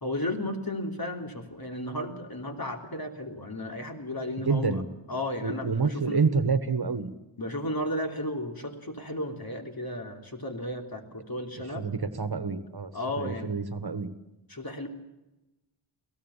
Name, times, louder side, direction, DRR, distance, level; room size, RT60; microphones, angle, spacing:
voice 1, 0.0-4.8 5.1-6.2 7.4-11.9 12.9-13.5 14.5-14.9, left 1 dB, 45° left, 4 dB, 3.4 m, -34 dB
voice 2, 4.4-4.8 5.4-7.1 11.7-12.9 13.2-14.1, right 4 dB, 50° right, 12 dB, 1.5 m, -28 dB
23.0 x 17.0 x 7.3 m, 1.0 s
cardioid pair, 40°, 48 cm